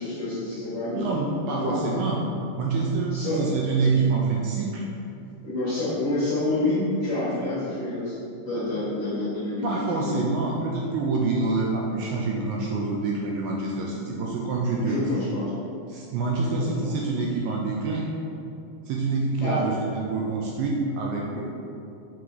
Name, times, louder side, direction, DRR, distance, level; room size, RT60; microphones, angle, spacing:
voice 1, 0.0-1.1 1.5-1.8 3.1-3.5 5.4-8.1 8.4-10.2 14.8-15.5 16.4-16.9 19.4-19.8 21.3-21.4, left 2 dB, 55° left, -10 dB, 1.8 m, -28 dB
voice 2, 0.9-2.2 2.6-4.9 9.6-15.2 15.9-18.1 18.9-21.4, right 3 dB, 80° right, -2 dB, 2.1 m, -26 dB
5.7 x 3.9 x 4.7 m, 2.6 s
omnidirectional pair, 4.4 m